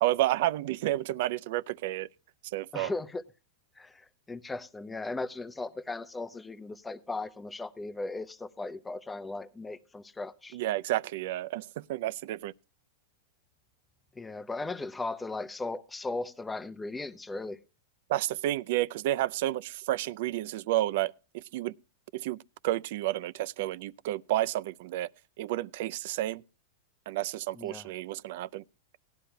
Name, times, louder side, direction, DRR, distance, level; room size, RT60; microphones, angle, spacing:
voice 1, 0.0-2.1 2.5-2.9 10.5-12.5 18.1-21.7 22.1-22.4 22.6-25.1 25.4-26.4 27.1-28.6, right 15 dB, 60° right, 0.4 m, -30 dB
voice 2, 2.7-3.2 3.8-10.6 14.2-17.6 27.5-27.9, left 3 dB, 10° left, 0.7 m, -37 dB
17.5 x 11.5 x 2.2 m
hypercardioid pair, 130°, 0 cm